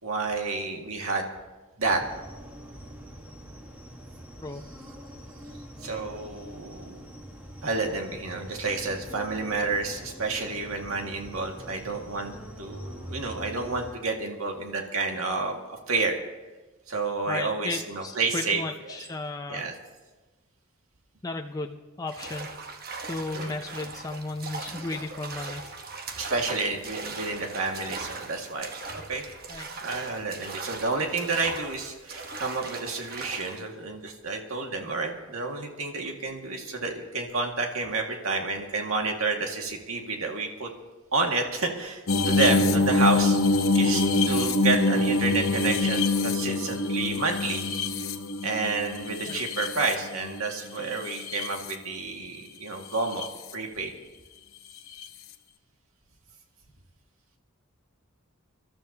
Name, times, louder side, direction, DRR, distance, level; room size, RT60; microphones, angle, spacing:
voice 1, 0.0-1.3 1.8-2.0 5.8-7.0 7.6-16.2 16.9-19.0 19.5-19.7 23.3-23.5 24.7-24.9 26.2-28.7 29.1-29.3 29.8-40.7 41.1-47.6 48.4-53.3 53.5-53.9, right 3 dB, 80° right, 2 dB, 2.0 m, -30 dB
sound 1, 1.8-13.9, equal, 5° right, 1.4 m, -44 dB
voice 2, 17.3-19.6 21.2-22.6 23.1-25.7 29.5-29.7 49.3-49.4, left 2 dB, 15° left, 3 dB, 0.5 m, -35 dB
sound 2, 22.1-33.6, right 4 dB, 45° right, 1.1 m, -39 dB
sound 3, 42.1-50.4 51.0-51.7 53.0-53.3 55.0-55.1, left 3 dB, 70° left, 0.9 m, -25 dB
25.5 x 12.5 x 2.8 m, 1.2 s
head